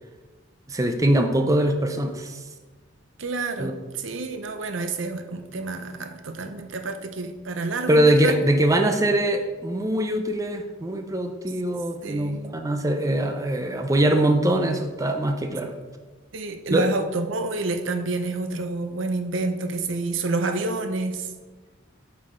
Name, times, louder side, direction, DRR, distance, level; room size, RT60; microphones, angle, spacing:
voice 1, 0.7-2.4 3.6-3.7 7.9-15.7 16.7-16.8, right 1 dB, 15° right, 5 dB, 0.5 m, -22 dB
voice 2, 3.2-8.4 12.0-12.5 16.3-21.3, right 3 dB, 75° right, 7 dB, 0.7 m, -28 dB
8.2 x 6.0 x 3.7 m, 1.3 s
head